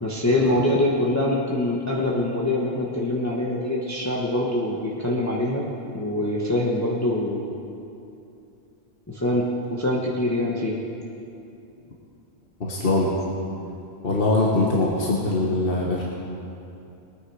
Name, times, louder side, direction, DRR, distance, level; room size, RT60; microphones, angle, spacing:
voice 1, 0.0-5.7 5.9-7.4 9.1-10.8, left 1 dB, 15° left, -4 dB, 1.2 m, -24 dB
voice 2, 12.6-13.1 14.0-16.0, left 2 dB, 55° left, -3 dB, 1.6 m, -22 dB
21.5 x 9.6 x 4.9 m, 2.7 s
omnidirectional pair, 1.1 m